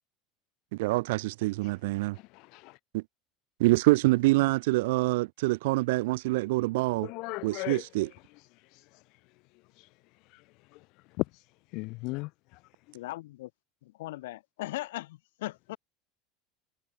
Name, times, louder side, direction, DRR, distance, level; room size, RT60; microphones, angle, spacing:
voice 1, 0.7-2.2 2.9-3.0 3.6-7.1 7.4-8.1, right 21 dB, 75° right, 0.4 m, -26 dB
voice 2, 2.3-2.8 7.0-7.8 11.2-11.3 11.7-12.3, left 25 dB, 65° left, 1.3 m, -34 dB
voice 3, 12.9-13.5 13.8-15.8, left 17 dB, 80° left, 4.4 m, -38 dB
hypercardioid pair, 90°, 0 cm